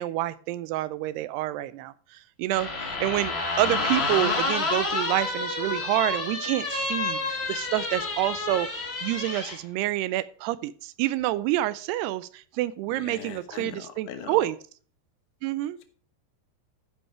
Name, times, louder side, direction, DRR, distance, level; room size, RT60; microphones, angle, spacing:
voice 1, 0.0-14.6 15.4-15.8, right 15 dB, 85° right, 16 dB, 2.5 m, -28 dB
sound 1, 2.5-9.6, left 3 dB, 45° left, 0.8 m, -29 dB
voice 2, 13.0-14.4, left 8 dB, 65° left, 7 dB, 2.0 m, -40 dB
13.0 x 5.6 x 4.5 m, 0.43 s
omnidirectional pair, 4.8 m